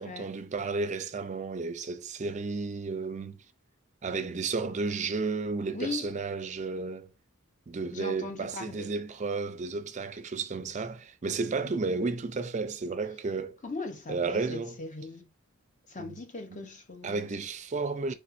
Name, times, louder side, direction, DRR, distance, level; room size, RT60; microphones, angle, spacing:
voice 1, 0.0-3.4 4.0-7.1 7.7-13.6 14.1-14.8 16.0-16.1 17.0-18.1, right 4 dB, 35° right, 0.4 m, -32 dB
voice 2, 5.7-6.1 7.9-8.9 11.4-11.7 13.6-15.3 15.9-17.3, left 3 dB, 35° left, 0.7 m, -39 dB
4.3 x 3.3 x 2.5 m
head